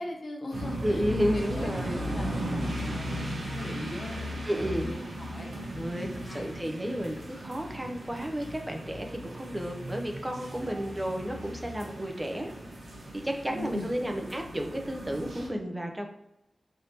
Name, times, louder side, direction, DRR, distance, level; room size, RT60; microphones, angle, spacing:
voice 1, 0.0-2.5 2.9-6.5 13.5-13.9, left 1 dB, 70° left, 0 dB, 0.6 m, -40 dB
sound 1, 0.5-15.5, equal, 85° right, 0.7 m, -37 dB
voice 2, 0.8-2.0 4.5-4.9 5.8-12.5 13.1-16.1, equal, 20° right, 3 dB, 0.5 m, -32 dB
3.4 x 2.7 x 2.7 m, 0.88 s
cardioid pair, 45°, 0 cm